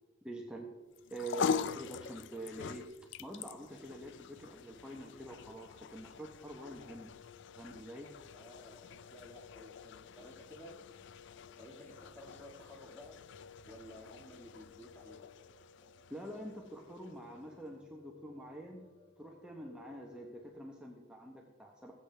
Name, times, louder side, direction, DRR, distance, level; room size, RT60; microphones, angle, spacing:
voice 1, 0.2-0.7 1.1-2.9 3.2-7.1 7.5-8.1 16.1-18.8 19.2-21.9, right 1 dB, 5° right, -1 dB, 1.1 m, -46 dB
sound 1, 0.9-17.4, left 6 dB, 65° left, 0.4 m, -44 dB
Piano, 6.8-20.5, left 5 dB, 30° left, 1.7 m, -60 dB
voice 2, 8.3-10.9 11.6-13.3 13.7-15.3, equal, 10° left, 1 dB, 1.9 m, -54 dB
20.0 x 8.4 x 3.4 m, 1.3 s
head